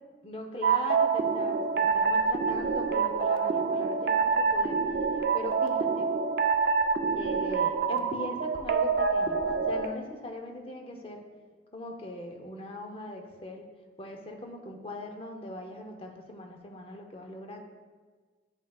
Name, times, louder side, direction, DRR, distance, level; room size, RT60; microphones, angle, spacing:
voice 1, 0.2-4.8 5.3-6.1 7.1-11.2 11.7-13.7 14.0-17.6, left 1 dB, 30° left, 3 dB, 0.6 m, -40 dB
sound 1, 0.6-9.9, right 5 dB, 60° right, 0.4 m, -26 dB
8.9 x 5.5 x 2.3 m, 1.5 s
head